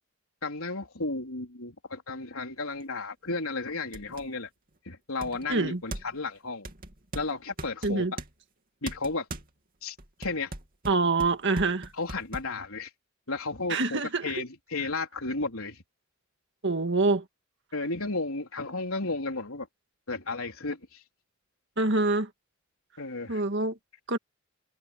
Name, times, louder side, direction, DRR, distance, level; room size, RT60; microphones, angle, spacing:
voice 1, 0.4-4.5 4.8-6.7 7.1-8.1 8.8-9.3 9.8-10.5 12.0-12.9 13.3-15.8 17.7-19.7 20.1-21.0 23.0-23.4, left 3 dB, 85° left, 3.9 m, -33 dB
sound 1, 2.8-2.9 3.4-3.5 3.9-4.3 5.2-6.3 6.6-8.3 8.9-9.5 10.0-12.5, right 2 dB, 45° right, 2.6 m, -39 dB
voice 2, 5.5-5.8 7.8-8.1 10.9-11.9 13.7-14.2 16.6-17.2 21.8-22.3 23.3-23.8 24.1-24.2, right 3 dB, 60° right, 2.0 m, -25 dB
head